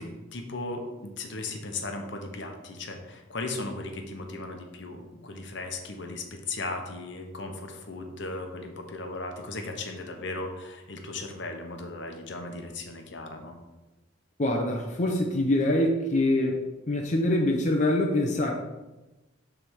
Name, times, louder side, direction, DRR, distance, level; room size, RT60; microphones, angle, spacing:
voice 1, 0.0-13.6, left 2 dB, 65° left, 4 dB, 1.0 m, -37 dB
voice 2, 14.4-16.6 16.9-18.5, left 1 dB, 35° left, 0 dB, 0.7 m, -24 dB
7.3 x 3.4 x 6.3 m, 1.1 s
head